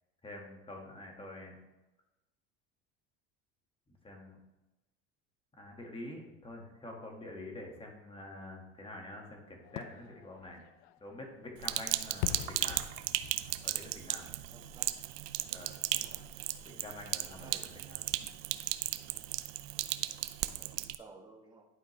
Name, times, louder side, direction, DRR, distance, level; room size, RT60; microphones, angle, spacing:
voice 1, 0.2-1.6 3.9-4.4 5.6-10.6 11.0-12.8 13.6-14.3 15.5-15.7 16.6-18.0, left 1 dB, 15° left, 1 dB, 1.8 m, -47 dB
Fireworks, 9.6-15.4 15.8-15.9, left 15 dB, 80° left, 0.5 m, -44 dB
Sink (filling or washing), 11.6-21.0, right 16 dB, 65° right, 0.5 m, -36 dB
voice 2, 14.5-15.0 15.9-16.2 17.2-17.7 18.2-18.3 19.7-20.0 20.4-21.7, right 3 dB, 10° right, -1 dB, 1.5 m, -56 dB
11.0 x 5.0 x 3.3 m, 1.0 s
supercardioid pair, 120°, 35 cm